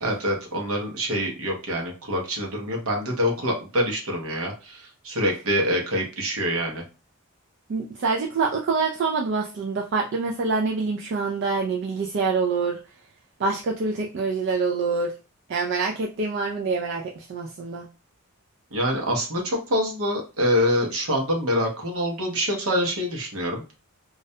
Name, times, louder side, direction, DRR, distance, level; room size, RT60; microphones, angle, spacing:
voice 1, 0.0-6.8 18.7-23.8, equal, 75° right, 1 dB, 0.7 m, -25 dB
voice 2, 7.7-12.8 13.4-15.1 15.5-17.9, right 4 dB, 55° right, 0 dB, 0.3 m, -26 dB
2.3 x 2.1 x 2.6 m, 0.33 s
head